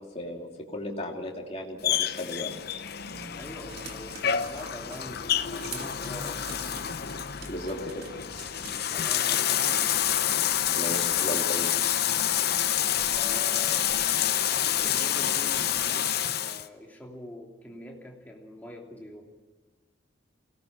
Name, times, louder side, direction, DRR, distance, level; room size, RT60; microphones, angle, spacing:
voice 1, 0.1-2.5 7.5-8.0 10.7-11.7, left 1 dB, 30° left, 0 dB, 2.9 m, -35 dB
Bathtub (filling or washing), 1.8-16.7, left 10 dB, 55° left, 0.8 m, -28 dB
sound 1, 3.0-16.0, left 1 dB, 85° left, 3.1 m, -48 dB
voice 2, 3.3-6.6 8.9-10.0 13.1-13.9 14.6-19.4, left 1 dB, 10° left, -1 dB, 2.9 m, -44 dB
sound 2, 3.7-5.1 5.6-8.8, right 6 dB, 55° right, 1.8 m, -46 dB
24.0 x 18.0 x 7.3 m, 1.3 s
head